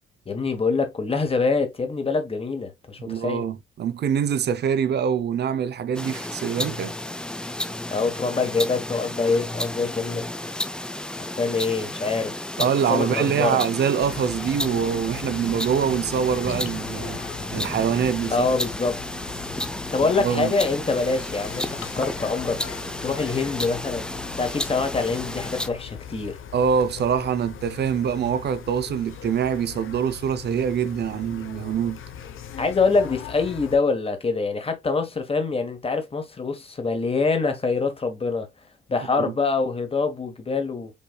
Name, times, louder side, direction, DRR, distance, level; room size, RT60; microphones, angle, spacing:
voice 1, 0.3-3.4 7.9-10.2 11.2-13.6 18.3-19.0 19.9-22.6 23.0-24.1 24.4-26.4 32.6-38.5 38.9-40.9, left 4 dB, 25° left, 1.2 m, -25 dB
voice 2, 3.0-6.9 12.6-17.2 17.5-18.5 20.0-20.5 26.5-32.0 39.2-39.3, right 8 dB, 55° right, 0.5 m, -24 dB
sound 1, 5.9-25.7, left 1 dB, 5° left, 0.3 m, -32 dB
sound 2, 14.0-33.8, left 8 dB, 75° left, 0.7 m, -40 dB
5.4 x 3.1 x 2.2 m
cardioid pair, 90°, 21 cm